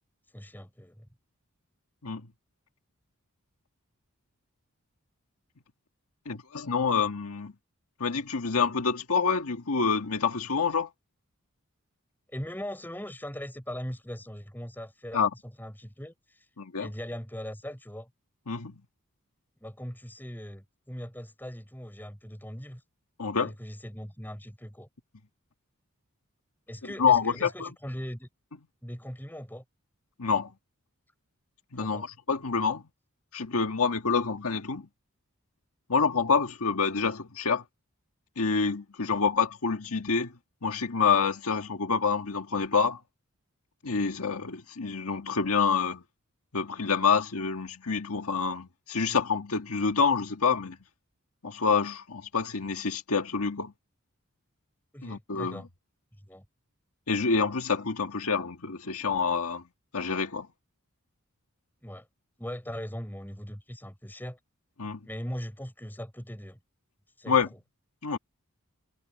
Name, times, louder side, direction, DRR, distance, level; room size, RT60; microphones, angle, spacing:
voice 1, 0.3-1.1 12.3-16.4 16.8-18.1 19.6-22.8 23.4-24.9 26.7-28.3 28.8-29.6 31.8-32.1 39.2-39.3 54.9-55.7 56.3-56.4 61.8-62.1 62.4-64.4 65.0-66.6 67.2-67.3, equal, 10° left, 6.6 m, -40 dB
voice 2, 6.2-7.5 8.0-10.9 15.1-15.3 16.6-16.9 18.5-18.7 23.2-23.5 27.0-27.7 30.2-30.5 31.7-32.8 33.3-34.8 35.9-37.6 38.4-40.3 40.6-43.0 43.8-46.0 46.5-50.8 51.4-53.7 55.0-55.6 57.1-59.6 59.9-60.5 64.8-65.0 67.3-67.5 68.0-68.2, left 5 dB, 80° left, 1.6 m, -27 dB
head